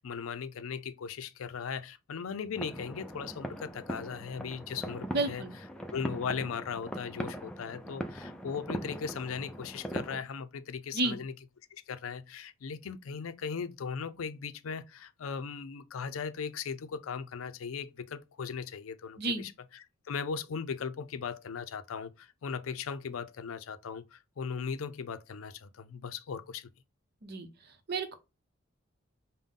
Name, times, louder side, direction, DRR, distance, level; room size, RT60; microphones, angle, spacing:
voice 1, 0.0-5.4 5.9-11.3 11.9-26.7, left 6 dB, 85° left, 0.4 m, -38 dB
sound 1, 2.5-10.2, equal, 5° left, 0.4 m, -40 dB
voice 2, 5.1-5.6 10.9-11.2 19.2-19.4 27.2-27.5 27.9-28.2, right 2 dB, 50° right, 0.7 m, -31 dB
5.4 x 2.1 x 3.6 m
head